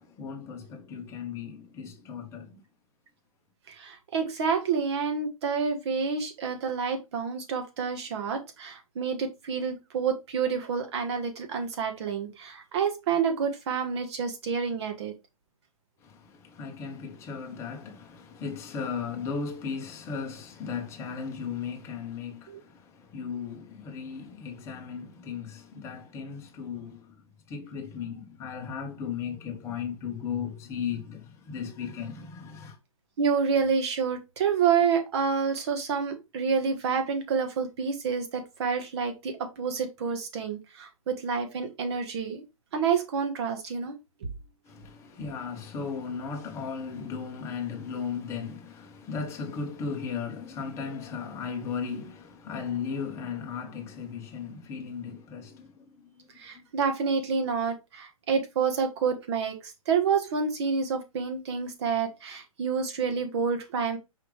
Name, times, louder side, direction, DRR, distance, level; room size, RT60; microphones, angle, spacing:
voice 1, 0.0-2.6 16.0-27.2 27.5-32.8 44.6-56.3 56.5-56.6, left 6 dB, 15° left, 0.8 m, -36 dB
voice 2, 3.7-15.1 22.5-22.6 33.2-42.4 42.7-43.9 56.4-64.0, right 6 dB, 45° right, 1.3 m, -28 dB
4.8 x 3.2 x 3.2 m
hypercardioid pair, 155°, 19 cm